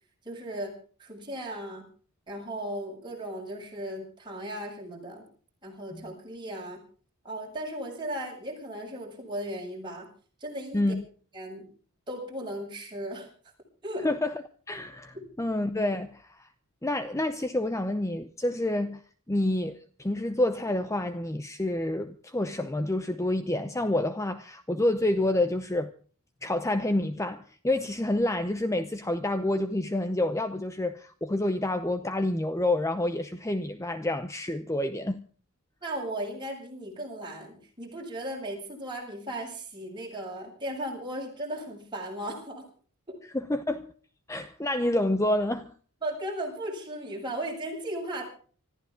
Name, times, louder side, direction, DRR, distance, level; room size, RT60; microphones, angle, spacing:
voice 1, 0.2-0.7 1.0-1.8 2.3-5.2 5.6-6.8 7.2-10.1 10.4-10.9 11.3-11.6 12.1-13.3 13.8-14.1 15.1-15.2 35.8-42.6 43.1-43.2 46.0-48.2, right 1 dB, 20° right, 7.6 m, -36 dB
voice 2, 10.7-11.0 14.0-14.3 14.7-16.5 16.8-19.0 19.3-25.9 26.4-35.3 43.3-43.9 44.3-45.7, left 1 dB, 15° left, 0.7 m, -28 dB
25.5 x 14.5 x 3.7 m
head